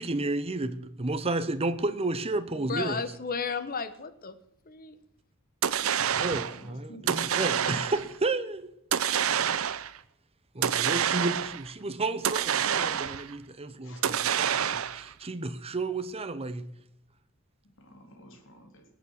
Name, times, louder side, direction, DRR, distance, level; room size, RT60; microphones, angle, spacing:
voice 1, 0.0-3.1 6.0-8.7 9.4-9.5 10.5-16.7, right 2 dB, 30° right, 0.9 m, -32 dB
voice 2, 2.5-4.3 4.7-5.0, left 5 dB, 45° left, 1.2 m, -33 dB
sound 1, 5.6-6.6 7.1-8.1 8.9-10.0 10.6-11.7 12.2-13.3 14.0-15.1, right 8 dB, 85° right, 0.7 m, -27 dB
voice 3, 6.4-7.8 13.8-14.1 17.8-18.9, equal, 65° left, 3.6 m, -49 dB
19.5 x 8.3 x 6.5 m
head